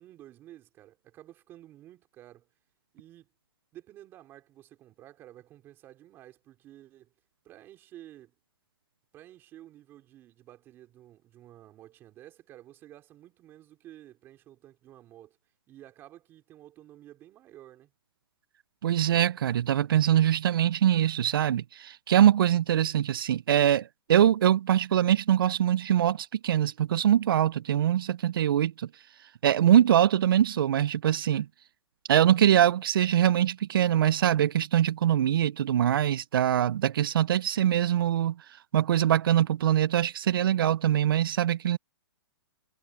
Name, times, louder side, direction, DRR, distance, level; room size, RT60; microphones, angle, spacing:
voice 1, 0.0-2.5 2.9-3.3 3.7-7.1 7.4-8.4 9.1-15.4 15.7-17.9, right 13 dB, 15° right, 4.1 m, -52 dB
voice 2, 18.8-28.9 29.4-31.5 32.1-38.4 38.7-41.8, right 10 dB, 60° right, 0.4 m, -23 dB
hypercardioid pair, 170°, 13 cm